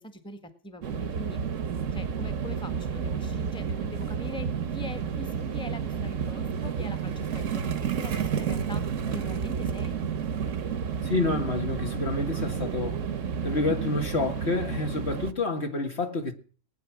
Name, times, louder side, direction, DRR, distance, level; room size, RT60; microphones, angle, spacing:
voice 1, 0.0-1.4 1.9-7.7 8.0-8.8 9.1-10.0, left 1 dB, 5° left, 1.5 m, -42 dB
sound 1, 0.8-15.3, right 7 dB, 60° right, 1.3 m, -31 dB
voice 2, 11.0-13.0 13.4-16.3, left 3 dB, 45° left, 1.9 m, -28 dB
19.5 x 9.6 x 6.1 m
omnidirectional pair, 1.6 m